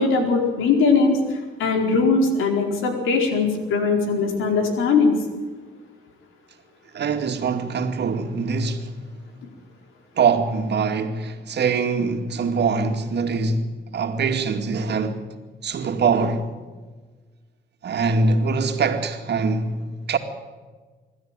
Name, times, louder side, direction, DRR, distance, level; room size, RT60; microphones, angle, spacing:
voice 1, 0.0-5.1, left 4 dB, 85° left, 4.6 m, -20 dB
voice 2, 6.9-8.9 10.2-15.2 15.6-16.5 17.8-20.2, right 4 dB, 60° right, 2.4 m, -23 dB
25.0 x 13.0 x 9.1 m
cardioid pair, 90°, 20 cm